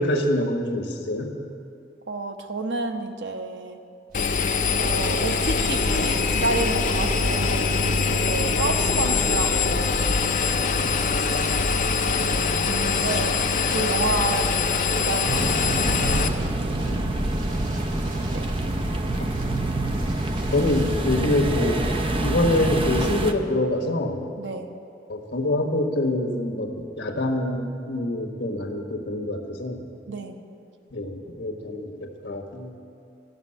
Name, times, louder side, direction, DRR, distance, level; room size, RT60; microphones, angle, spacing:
voice 1, 0.0-1.3 7.4-7.7 8.0-8.2 10.8-11.7 12.9-13.2 13.7-13.8 16.8-17.2 20.5-21.9 22.2-24.2 25.1-29.8 30.9-32.8, left 1 dB, 80° left, 2 dB, 1.5 m, -26 dB
voice 2, 2.1-3.8 4.8-7.5 8.1-10.2 12.0-13.3 13.6-16.2 18.3-18.4 24.4-24.7 30.1-30.4, right 3 dB, 85° right, 5 dB, 0.9 m, -30 dB
Engine, 4.1-16.3, left 4 dB, 45° left, 0.7 m, -23 dB
sound 1, 4.1-23.2, equal, 50° right, 1.5 m, -38 dB
sound 2, 15.3-23.3, right 2 dB, 30° right, 0.6 m, -26 dB
13.0 x 6.5 x 9.8 m, 2.5 s
head